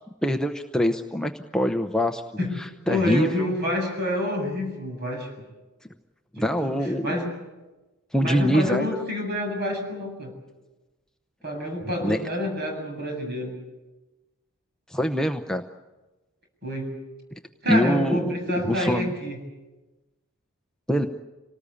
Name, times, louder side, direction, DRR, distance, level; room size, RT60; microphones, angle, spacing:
voice 1, 0.2-2.2 2.6-3.5 6.3-7.1 8.1-8.9 12.0-12.2 14.9-15.6 17.7-18.3 18.6-19.1 20.9-21.1, equal, 5° left, 5 dB, 0.8 m, -24 dB
voice 2, 2.9-5.3 6.4-6.7 7.0-7.3 8.2-10.3 11.4-13.6 16.6-17.0 17.6-19.4, left 1 dB, 50° right, 2 dB, 7.7 m, -28 dB
26.5 x 19.0 x 8.6 m, 1.1 s
head